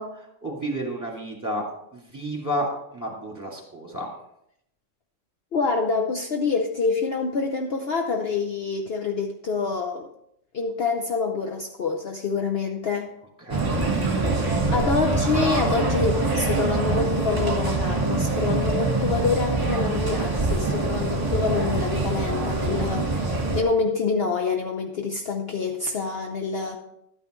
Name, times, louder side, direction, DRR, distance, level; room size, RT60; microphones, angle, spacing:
voice 1, 0.0-1.6 1.9-4.1 13.4-13.8 14.3-14.6, equal, 15° right, -2 dB, 2.5 m, -31 dB
voice 2, 5.5-10.1 10.5-13.1 14.7-26.8, left 4 dB, 55° left, 2 dB, 0.9 m, -26 dB
sound 1, 13.5-23.6, right 3 dB, 30° right, 1.6 m, -24 dB
12.0 x 9.2 x 3.1 m, 0.77 s
omnidirectional pair, 1.4 m